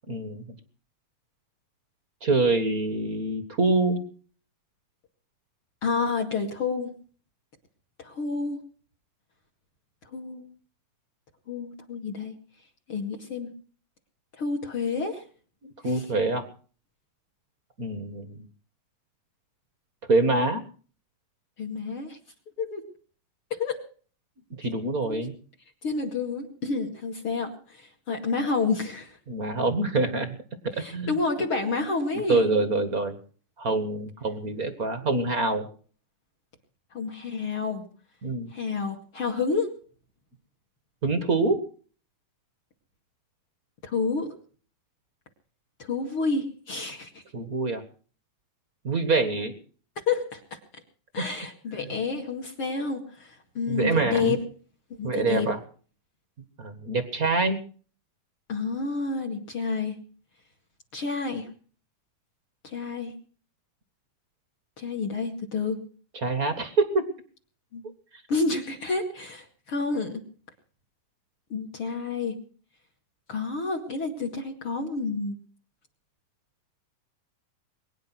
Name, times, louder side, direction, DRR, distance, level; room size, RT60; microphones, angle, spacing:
voice 1, 0.1-0.4 2.2-4.0 15.6-16.4 17.8-18.4 20.1-20.6 24.6-25.3 29.3-30.4 30.9-31.1 32.3-33.2 33.6-35.7 38.2-38.5 41.0-41.6 47.3-47.8 48.8-49.5 51.2-51.3 53.7-54.3 55.0-55.6 56.6-57.6 66.2-67.1, right 3 dB, 55° right, 10 dB, 0.9 m, -25 dB
voice 2, 5.8-6.9 8.0-8.6 10.1-10.5 11.5-12.3 12.9-13.5 14.4-15.2 15.8-16.0 21.6-22.2 22.6-22.9 23.5-23.8 25.1-25.2 25.8-29.2 30.7-32.5 36.9-37.8 38.5-39.7 43.8-44.3 45.8-47.2 50.0-50.6 51.1-54.4 55.0-55.5 58.5-60.0 60.9-61.5 62.6-63.1 64.8-65.8 67.7-67.8 68.3-70.2 71.5-72.4 73.3-75.4, left 4 dB, 40° left, 2 dB, 2.6 m, -29 dB
22.5 x 10.5 x 6.2 m, 0.43 s
omnidirectional pair, 4.3 m